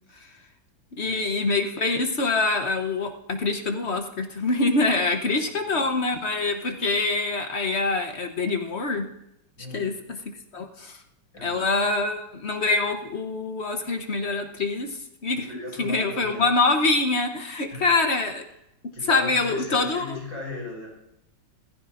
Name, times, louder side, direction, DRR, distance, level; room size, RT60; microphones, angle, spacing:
voice 1, 1.0-9.1 9.7-10.2 10.5-11.0 11.4-15.5 15.8-18.4 18.8-20.2, left 3 dB, 45° left, 6 dB, 0.9 m, -25 dB
voice 2, 5.4-5.8 9.6-10.0 11.3-11.7 15.3-16.5 17.7-18.0 18.9-20.9, left 2 dB, 80° left, -3 dB, 6.3 m, -38 dB
16.0 x 14.5 x 2.5 m, 0.82 s
omnidirectional pair, 2.1 m